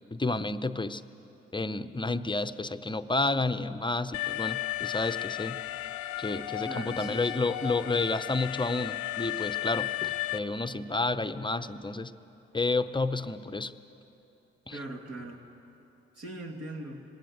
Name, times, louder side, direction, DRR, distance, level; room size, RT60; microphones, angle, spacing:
voice 1, 0.1-1.0 1.5-5.6 6.2-12.1 12.5-13.7 14.7-14.8, left 3 dB, 15° left, 12 dB, 0.7 m, -30 dB
Alarm, 4.1-10.4, left 16 dB, 85° left, 0.6 m, -34 dB
voice 2, 6.6-7.3 14.7-15.5 16.2-17.0, right 2 dB, 55° right, 3 dB, 2.3 m, -40 dB
19.5 x 17.5 x 8.0 m, 3.0 s
hypercardioid pair, 40°, 29 cm